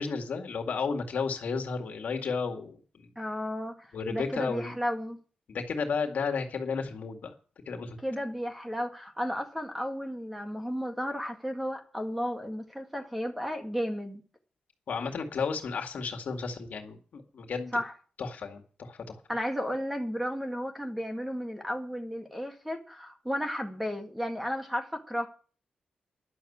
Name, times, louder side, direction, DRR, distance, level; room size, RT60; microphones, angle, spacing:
voice 1, 0.0-3.1 3.9-4.8 5.5-7.3 7.7-8.0 14.9-17.8 18.2-19.2, left 5 dB, 65° left, 2.1 m, -33 dB
voice 2, 3.2-5.2 8.0-14.2 17.7-17.9 19.3-25.3, equal, 5° right, 1.9 m, -33 dB
11.0 x 7.0 x 8.5 m
wide cardioid pair, 115°, 3 cm